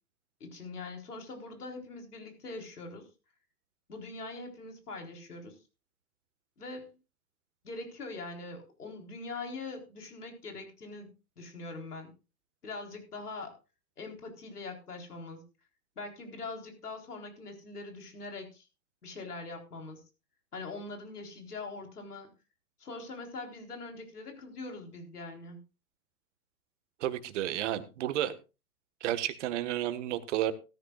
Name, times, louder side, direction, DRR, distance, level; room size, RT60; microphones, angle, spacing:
voice 1, 0.4-3.1 3.9-5.6 6.6-6.9 7.6-12.1 12.6-13.6 14.0-15.4 16.0-18.7 19.0-20.0 20.5-22.3 22.8-25.6, left 3 dB, 85° left, 3 dB, 4.2 m, -42 dB
voice 2, 27.0-28.4 29.0-30.5, right 12 dB, 50° right, 12 dB, 1.6 m, -31 dB
16.0 x 13.5 x 2.4 m, 0.29 s
hypercardioid pair, 120°, 45 cm